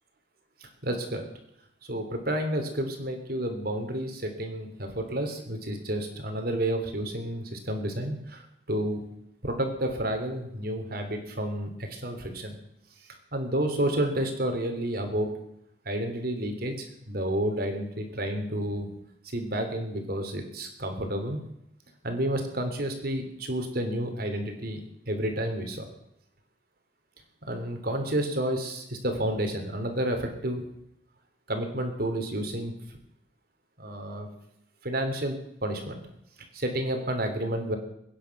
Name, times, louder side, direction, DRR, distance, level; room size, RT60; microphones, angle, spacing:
voice 1, 0.6-1.2 1.9-9.0 9.4-12.6 13.1-15.3 15.8-18.9 19.3-21.4 22.0-25.8 27.5-30.6 31.5-32.7 33.8-34.3 34.8-36.0 36.5-37.8, right 1 dB, 55° right, 5 dB, 3.3 m, -30 dB
23.0 x 10.0 x 6.0 m, 0.77 s
head